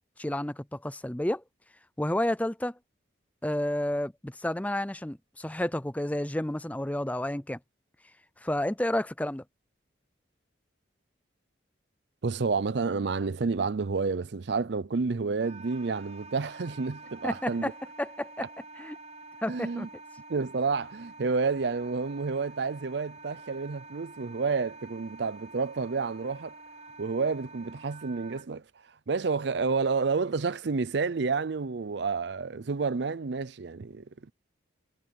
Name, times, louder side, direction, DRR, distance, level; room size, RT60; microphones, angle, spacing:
voice 1, 0.2-1.4 2.0-2.8 3.4-7.6 8.4-9.4 17.2-18.5 18.8-19.0 19.4-19.9, left 1 dB, 5° left, 0.5 m, -31 dB
voice 2, 12.2-17.7 18.4-18.5 19.5-19.9 20.3-26.6 27.0-28.6 29.1-34.3, right 4 dB, 60° right, 0.5 m, -30 dB
Wind instrument woodwind instrument, 15.4-28.5, right 3 dB, 35° right, 4.8 m, -48 dB
head